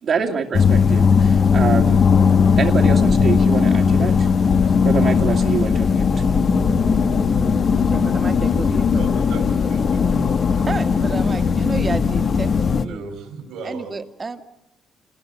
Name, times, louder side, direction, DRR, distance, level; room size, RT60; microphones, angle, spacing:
voice 1, 0.0-2.0 2.6-4.3 4.8-6.1, right 6 dB, 55° right, -3 dB, 2.3 m, -25 dB
sound 1, 0.5-12.9, left 6 dB, 50° left, 1.3 m, -17 dB
voice 2, 7.7-9.1 10.7-12.5 12.7-13.1 13.6-14.4, right 4 dB, 30° right, 8 dB, 1.9 m, -30 dB
voice 3, 8.9-10.7 12.8-13.9, right 4 dB, 85° right, 5 dB, 4.5 m, -37 dB
28.5 x 20.0 x 6.9 m, 0.91 s
cardioid pair, 90°, 0 cm